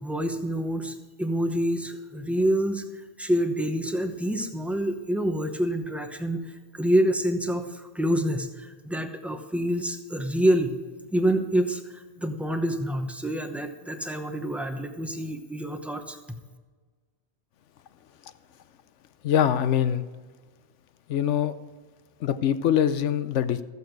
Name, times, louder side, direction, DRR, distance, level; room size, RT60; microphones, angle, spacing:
voice 1, 0.0-2.8 3.2-6.4 6.7-10.8 11.1-16.2, right 1 dB, ahead, 6 dB, 0.7 m, -27 dB
voice 2, 19.2-20.0 21.1-21.5 22.2-23.6, left 9 dB, 90° left, 13 dB, 1.0 m, -23 dB
14.0 x 8.2 x 4.6 m, 1.4 s
omnidirectional pair, 1.2 m